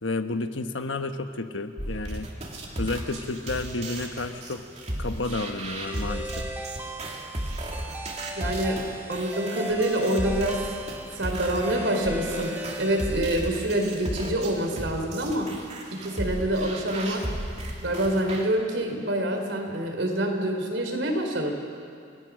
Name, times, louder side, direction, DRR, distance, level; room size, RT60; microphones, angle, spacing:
voice 1, 0.0-2.3 2.8-4.6 5.0-6.5, left 2 dB, 80° left, 8 dB, 1.2 m, -31 dB
sound 1, 1.8-18.5, right 1 dB, 35° right, 2.6 m, -35 dB
sound 2, 5.9-14.0, right 1 dB, 10° right, 1.4 m, -37 dB
voice 2, 8.4-10.7 11.2-15.5 15.9-17.2 17.8-21.6, right 1 dB, 75° right, 2 dB, 4.0 m, -26 dB
30.0 x 19.0 x 6.3 m, 2.3 s
head